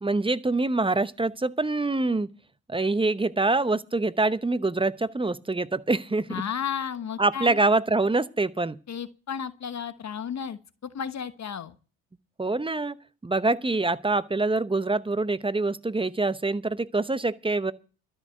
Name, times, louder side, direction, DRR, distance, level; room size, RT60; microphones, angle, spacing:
voice 1, 0.0-2.3 2.7-6.4 7.2-8.8 12.4-12.9 13.2-17.7, right 3 dB, 15° right, 0.9 m, -25 dB
voice 2, 6.3-7.6 8.9-11.7, left 8 dB, 45° left, 1.1 m, -33 dB
12.5 x 6.4 x 8.8 m
supercardioid pair, 70°, 39 cm